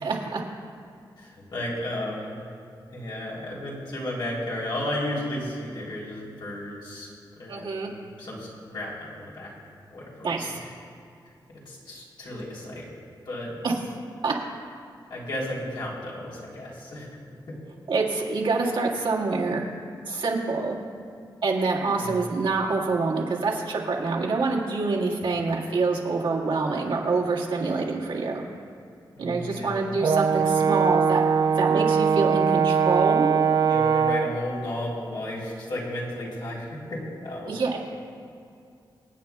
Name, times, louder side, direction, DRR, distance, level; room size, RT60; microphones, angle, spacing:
voice 1, 0.0-0.4 7.5-7.9 10.2-10.6 13.6-13.7 14.2-14.3 17.9-19.6 20.1-20.8 21.4-28.4 29.2-31.3 31.6-33.3 37.5-37.8, right 3 dB, 85° right, -3 dB, 1.9 m, -26 dB
voice 2, 1.2-2.3 2.9-7.1 7.3-9.5 9.9-10.7 11.5-12.9 13.2-13.6 15.1-17.2 17.5-17.6 22.0-22.2 29.2-29.9 33.7-37.6, left 1 dB, 70° left, -5 dB, 3.4 m, -34 dB
Brass instrument, 30.0-34.4, right 6 dB, 50° right, 0.4 m, -21 dB
26.0 x 9.0 x 2.3 m, 2.4 s
wide cardioid pair, 115°, 8 cm